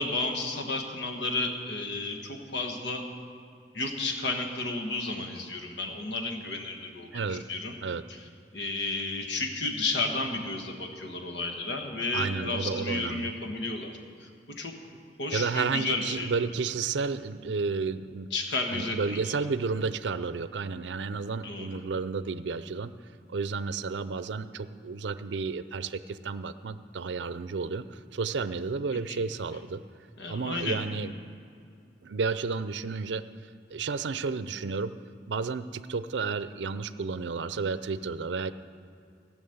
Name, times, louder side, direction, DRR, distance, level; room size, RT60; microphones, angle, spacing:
voice 1, 0.0-3.0 3.7-7.8 8.1-8.2 8.5-14.7 15.2-16.3 18.3-19.4 21.4-21.8 29.1-29.2 30.2-30.8, left 2 dB, 80° left, 4 dB, 1.4 m, -32 dB
voice 2, 7.1-7.4 7.8-8.0 12.1-13.3 15.3-18.3 18.7-22.9 23.3-29.8 30.3-31.1 32.0-33.2 33.7-34.9 35.3-38.5, right 4 dB, 85° right, 14 dB, 0.5 m, -32 dB
16.5 x 6.2 x 7.9 m, 2.4 s
head